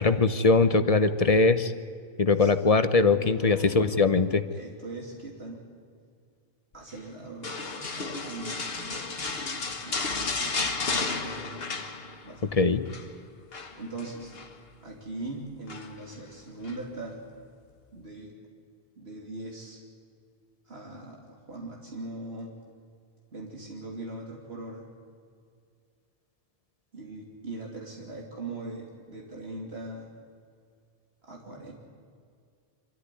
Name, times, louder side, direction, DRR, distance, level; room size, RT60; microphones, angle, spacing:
voice 1, 0.0-1.7 2.2-4.4 12.5-12.8, left 3 dB, 40° left, 11 dB, 0.9 m, -21 dB
voice 2, 3.1-4.0 4.5-5.7 6.7-9.3 9.6-11.6 12.2-12.7 13.8-14.3 14.8-17.2 17.9-18.3 19.0-19.8 20.7-22.5 23.3-24.8 26.9-30.1 31.2-31.7, right 2 dB, 75° right, -1 dB, 3.0 m, -41 dB
sound 1, 7.4-12.4 12.7-13.1 13.5-14.5 15.7-16.1 16.6-16.8, left 4 dB, 65° left, 1.6 m, -33 dB
25.5 x 14.0 x 9.9 m, 2.2 s
omnidirectional pair, 1.1 m